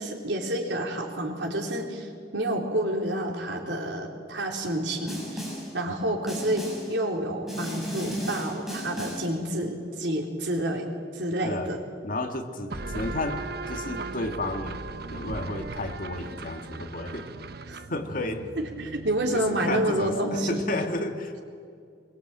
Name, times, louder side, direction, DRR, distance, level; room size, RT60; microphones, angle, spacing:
voice 1, 0.0-5.4 5.7-10.9 11.1-11.8 17.7-17.8 18.6-20.6, right 1 dB, 90° right, 1 dB, 3.9 m, -29 dB
Snare drum, 5.1-5.8 6.3-7.0 7.5-9.4, equal, ahead, 7.4 m, -35 dB
voice 2, 12.0-14.8 15.1-17.3 17.7-18.5 19.3-21.4, left 2 dB, 50° left, 5 dB, 2.1 m, -32 dB
sound 1, 12.7-20.1, right 3 dB, 60° right, 1.1 m, -38 dB
23.0 x 22.5 x 9.1 m, 2.4 s
head